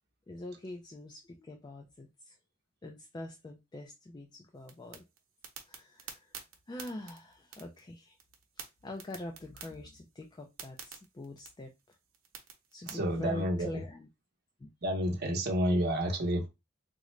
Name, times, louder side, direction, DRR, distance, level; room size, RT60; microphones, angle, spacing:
voice 1, 0.3-2.4 2.8-5.0 5.7-6.3 6.7-8.1 8.6-12.0 12.7-14.1 14.6-14.7, left 1 dB, 20° left, 0.4 m, -44 dB
sound 1, 4.6-12.9, right 7 dB, 90° right, 0.8 m, -50 dB
voice 2, 12.8-13.8 14.8-16.5, equal, 55° right, 0.8 m, -30 dB
3.7 x 2.1 x 3.1 m
head